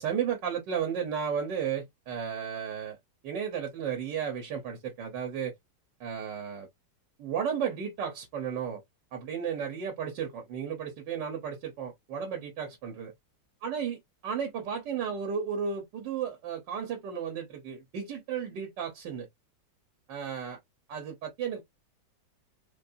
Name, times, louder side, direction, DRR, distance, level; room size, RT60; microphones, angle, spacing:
voice 1, 0.0-3.0 3.2-5.5 6.0-6.7 7.2-8.8 9.1-13.1 13.6-14.0 14.2-19.3 20.1-20.6 20.9-21.6, right 7 dB, 70° right, 1.6 m, -33 dB
4.2 x 2.6 x 2.5 m
omnidirectional pair, 2.0 m